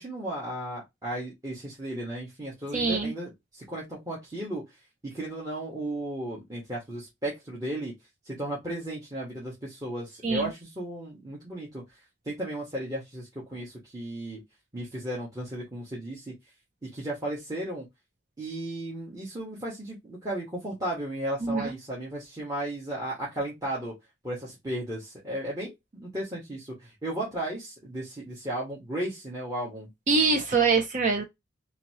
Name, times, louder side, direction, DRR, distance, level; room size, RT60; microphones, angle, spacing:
voice 1, 0.0-4.6 5.0-7.9 8.2-11.8 12.2-14.4 14.7-16.3 16.8-17.8 18.4-23.9 24.2-29.9, right 1 dB, 20° right, 1.4 m, -35 dB
voice 2, 2.7-3.1 10.2-10.5 21.4-21.7 30.1-31.2, right 4 dB, 40° right, 0.5 m, -24 dB
4.0 x 2.7 x 2.9 m
head